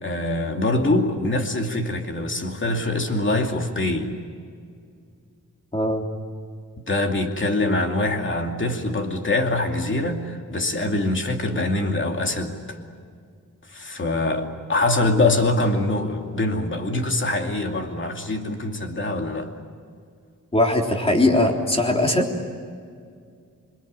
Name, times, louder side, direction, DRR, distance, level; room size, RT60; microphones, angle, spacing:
voice 1, 0.0-4.2 6.9-12.8 13.7-19.5, left 2 dB, 40° left, 3 dB, 2.6 m, -24 dB
voice 2, 5.7-6.0 20.5-22.3, left 1 dB, 20° left, 1 dB, 3.5 m, -20 dB
27.5 x 23.0 x 9.0 m, 2.2 s
wide cardioid pair, 160°, 31 cm